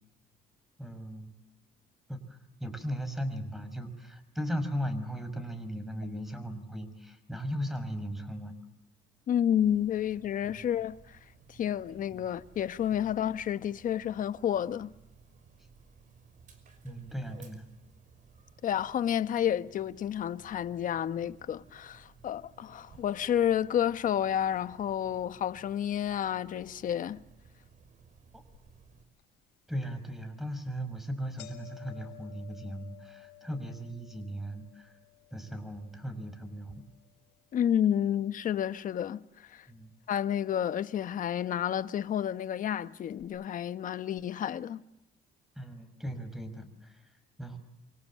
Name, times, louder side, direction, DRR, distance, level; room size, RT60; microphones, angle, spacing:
voice 1, 0.8-1.3 2.1-8.5 10.4-10.6 12.1-12.2 12.9-13.1 16.8-17.7 28.3-28.4 29.7-34.9 35.3-36.8 39.7-39.9 45.6-47.6, equal, ahead, 5.7 m, -37 dB
voice 2, 9.3-11.2 11.5-14.9 18.6-27.2 37.5-39.7 40.1-44.8, left 10 dB, 50° left, 1.1 m, -30 dB
Dog, 9.6-29.0, right 5 dB, 50° right, 5.5 m, -58 dB
sound 1, 28.5-28.6 29.2-29.3 30.1-30.3 30.6-30.7 31.0-39.2 39.5-40.2 41.0-41.1 42.1-42.2 42.4-42.5 43.1-43.2, left 19 dB, 85° left, 6.4 m, -55 dB
27.5 x 25.0 x 7.5 m
cardioid pair, 110°, 17 cm